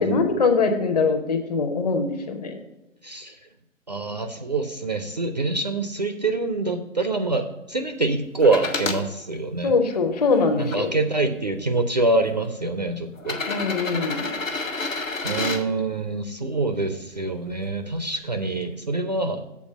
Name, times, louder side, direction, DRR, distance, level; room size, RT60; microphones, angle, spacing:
voice 1, 0.0-2.5 9.6-10.9 13.5-14.2, left 4 dB, 30° left, 6 dB, 0.9 m, -22 dB
voice 2, 3.0-3.4 3.9-9.7 10.6-13.4 15.2-19.4, right 3 dB, 35° right, 7 dB, 0.4 m, -25 dB
sound 1, 8.4-9.0 9.7-10.8 11.8-11.9 13.2-15.6 17.5-17.6, left 3 dB, 80° left, 1.2 m, -29 dB
7.3 x 4.2 x 6.5 m, 1.0 s
figure-of-eight pair, 140°, 39 cm